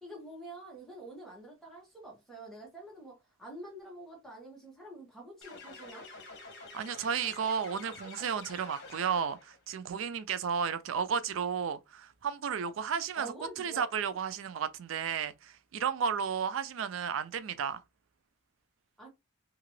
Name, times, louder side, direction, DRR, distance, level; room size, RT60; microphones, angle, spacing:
voice 1, 0.0-6.1 13.2-13.9 19.0-19.1, right 2 dB, ahead, 1.1 m, -47 dB
sound 1, 5.4-9.6, left 3 dB, 55° left, 1.1 m, -48 dB
voice 2, 6.7-17.8, right 7 dB, 85° right, 0.4 m, -33 dB
2.8 x 2.4 x 3.1 m
head